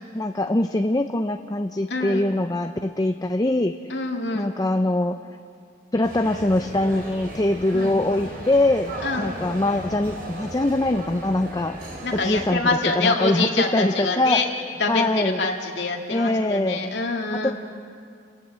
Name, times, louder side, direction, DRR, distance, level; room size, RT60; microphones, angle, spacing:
voice 1, 0.1-3.8 4.3-5.2 5.9-11.8 12.1-12.6 13.0-14.4 14.9-15.4 16.1-16.8 17.4-17.5, left 1 dB, 20° left, 7 dB, 0.6 m, -23 dB
voice 2, 1.9-2.3 3.9-4.5 7.7-8.0 9.0-9.3 12.0-14.5 14.8-17.5, left 3 dB, 70° left, 1 dB, 2.3 m, -25 dB
sound 1, 6.0-12.5, right 1 dB, 50° right, 5.4 m, -36 dB
29.5 x 18.5 x 7.7 m, 2.3 s
head